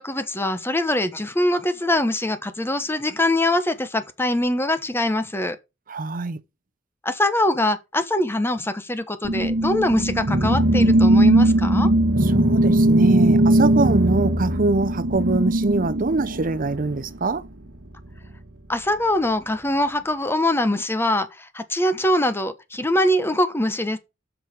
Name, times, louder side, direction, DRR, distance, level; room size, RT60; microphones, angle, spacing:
voice 1, 0.0-5.6 7.0-11.9 18.7-24.0, left 1 dB, 10° left, 0.9 m, -23 dB
voice 2, 5.9-6.4 12.2-17.4, right 3 dB, 45° right, 0.7 m, -24 dB
sound 1, 9.2-17.0, right 1 dB, 65° right, 1.4 m, -19 dB
7.8 x 6.2 x 5.2 m
head